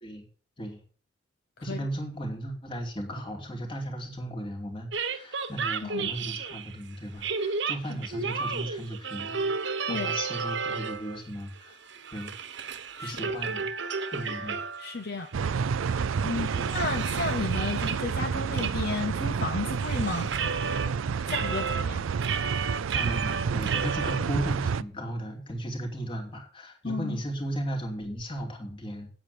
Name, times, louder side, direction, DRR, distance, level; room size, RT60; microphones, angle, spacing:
voice 1, 1.6-11.8 12.1-12.3 13.0-13.7 14.1-14.6 16.5-16.7 21.2-21.3 22.9-29.1, right 1 dB, 25° left, 1 dB, 2.6 m, -36 dB
sound 1, 4.9-6.8 7.2-11.2 11.5-15.0 15.4-15.5 15.9-18.1 18.6-18.7 19.0-20.9 21.2-24.2, right 5 dB, 60° right, 1.2 m, -33 dB
voice 2, 14.8-15.3 15.8-20.3 21.3-22.0 26.8-27.2, left 3 dB, 50° left, 8 dB, 0.8 m, -33 dB
sound 2, 15.3-24.8, right 6 dB, 80° right, 0.4 m, -29 dB
9.2 x 8.0 x 6.8 m, 0.43 s
head